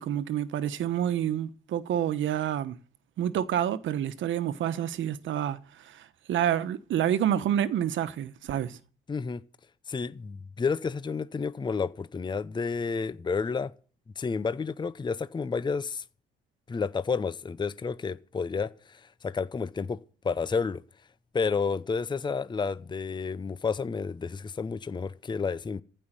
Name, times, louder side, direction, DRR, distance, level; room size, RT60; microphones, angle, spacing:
voice 1, 0.0-2.8 3.2-5.6 5.8-8.8, right 10 dB, 75° right, 1.1 m, -28 dB
voice 2, 9.1-9.4 9.9-13.7 14.2-16.0 16.7-20.0 20.2-20.8 21.3-25.8, left 5 dB, 20° left, 0.6 m, -30 dB
15.0 x 5.5 x 9.9 m
cardioid pair, 90°, 20 cm